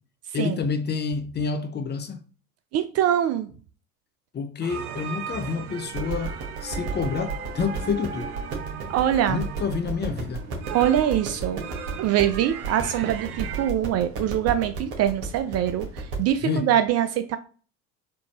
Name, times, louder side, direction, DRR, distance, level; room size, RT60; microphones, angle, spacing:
voice 1, 0.3-2.2 4.3-6.3 6.6-8.3 9.3-10.4 16.4-16.7, left 5 dB, 25° left, 0.6 m, -28 dB
voice 2, 2.7-3.5 8.9-9.4 10.7-11.6 12.0-17.4, right 11 dB, 35° right, 0.4 m, -23 dB
sound 1, 4.6-13.7, right 7 dB, 80° right, 0.7 m, -37 dB
sound 2, 5.9-16.4, right 4 dB, 60° right, 1.7 m, -34 dB
4.4 x 2.7 x 2.9 m
hypercardioid pair, 70°, 44 cm